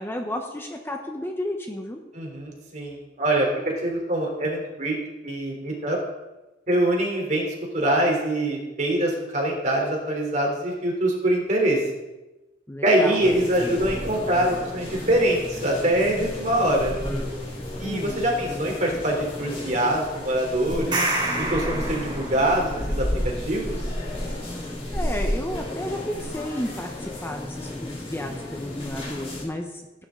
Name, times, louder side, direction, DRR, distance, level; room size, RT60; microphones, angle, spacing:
voice 1, 0.0-2.0 12.7-13.2 17.8-18.2 24.9-30.0, left 1 dB, 15° left, 3 dB, 1.0 m, -32 dB
voice 2, 2.1-5.0 5.2-6.0 6.7-7.4 7.7-11.8 12.8-16.9 17.8-21.0 21.4-23.1 23.4-23.8, right 1 dB, 40° right, 0 dB, 3.4 m, -24 dB
sound 1, 13.2-29.4, left 1 dB, 35° left, 4.4 m, -32 dB
sound 2, 20.7-22.7, right 2 dB, 25° right, 4.1 m, -27 dB
17.5 x 10.0 x 3.8 m, 1.1 s
head